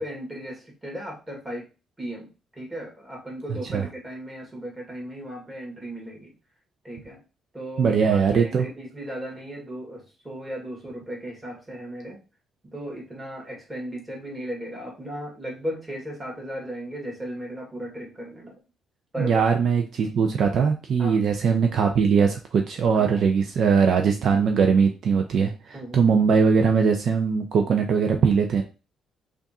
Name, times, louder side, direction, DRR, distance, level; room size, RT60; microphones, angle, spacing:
voice 1, 0.0-1.7 2.0-6.3 6.8-7.2 7.5-12.2 12.7-18.5 19.1-19.4 21.0-21.2 22.9-23.2 25.7-26.0, equal, 20° right, -1 dB, 1.8 m, -36 dB
voice 2, 3.5-3.8 7.8-8.7 19.2-28.6, right 6 dB, 65° right, 4 dB, 0.5 m, -21 dB
3.4 x 2.5 x 4.1 m, 0.31 s
cardioid pair, 90°, 0 cm